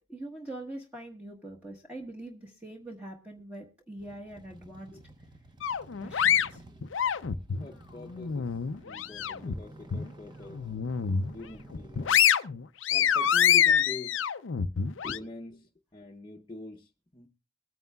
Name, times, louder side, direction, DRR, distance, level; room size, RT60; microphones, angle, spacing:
voice 1, 0.1-5.0 5.9-6.6, right 1 dB, 10° right, 1.4 m, -43 dB
sound 1, 4.0-12.2, right 2 dB, 25° right, 1.0 m, -52 dB
sound 2, 5.6-7.6 8.1-9.5 9.9-10.1 10.5-11.3 11.7-15.2, left 8 dB, 75° left, 0.5 m, -26 dB
voice 2, 7.6-8.5 8.8-10.7 11.3-12.2 12.9-14.2 15.0-17.3, left 2 dB, 25° left, 0.9 m, -44 dB
22.5 x 9.3 x 2.3 m
head